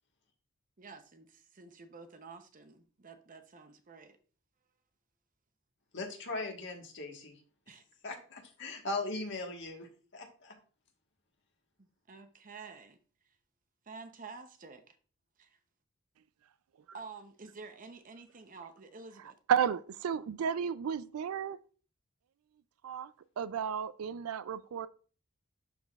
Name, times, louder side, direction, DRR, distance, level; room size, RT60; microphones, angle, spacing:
voice 1, 0.8-4.2 7.7-7.8 11.8-13.0 13.2-13.4 13.8-15.0 15.4-15.6 16.9-19.4, right 4 dB, 35° right, 0.7 m, -50 dB
voice 2, 5.9-7.4 8.0-10.6, left 2 dB, 55° left, 1.4 m, -39 dB
voice 3, 19.5-21.6 22.8-23.1 23.4-24.9, right 8 dB, 75° right, 0.4 m, -32 dB
11.5 x 4.0 x 2.3 m
head